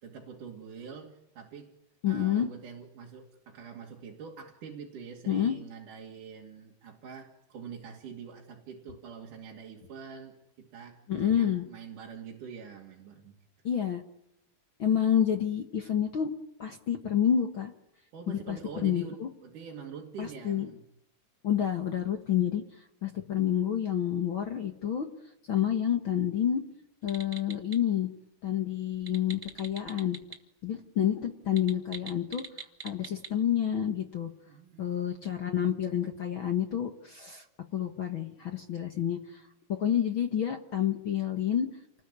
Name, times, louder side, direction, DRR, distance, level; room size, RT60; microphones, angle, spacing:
voice 1, 0.0-1.7 2.1-13.4 18.1-20.8 34.5-35.4, right 6 dB, 55° right, 0 dB, 3.8 m, -45 dB
voice 2, 2.0-2.5 5.3-5.5 11.1-11.6 13.6-14.0 14.8-16.3 16.6-17.7 18.3-19.3 20.2-20.7 21.4-22.6 23.0-25.1 25.5-26.6 27.0-28.1 28.4-30.2 30.6-32.4 32.8-34.3 34.8-37.4 37.7-39.4 39.8-41.7, left 9 dB, 65° left, 6 dB, 1.2 m, -29 dB
sound 1, 27.0-27.8 28.9-30.4 30.6-30.7 31.4-33.3, right 3 dB, 30° right, 0.7 m, -44 dB
29.5 x 20.5 x 9.8 m, 0.83 s
omnidirectional pair, 4.6 m